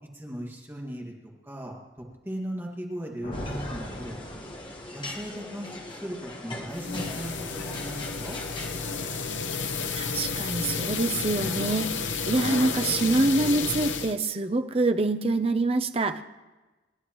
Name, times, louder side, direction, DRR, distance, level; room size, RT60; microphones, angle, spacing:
voice 1, 0.1-4.2 4.9-8.4, equal, 15° right, -1 dB, 2.0 m, -37 dB
sound 1, 3.2-5.2, equal, 50° left, 2.8 m, -39 dB
sound 2, 3.3-9.2, left 1 dB, 25° left, 1.5 m, -40 dB
sound 3, 6.7-14.1, left 5 dB, 85° left, 0.8 m, -31 dB
voice 2, 9.9-16.2, right 2 dB, 30° right, 8 dB, 0.6 m, -25 dB
28.0 x 11.5 x 3.1 m, 1.2 s
head